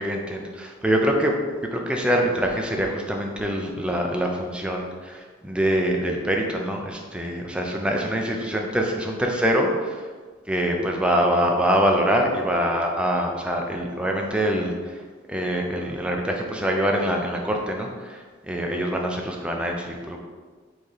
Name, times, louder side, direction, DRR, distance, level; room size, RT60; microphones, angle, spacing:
voice 1, 0.0-1.3 1.7-10.1 10.5-15.0 15.3-20.2, equal, 5° right, 1 dB, 0.4 m, -24 dB
4.4 x 3.6 x 3.3 m, 1.5 s
head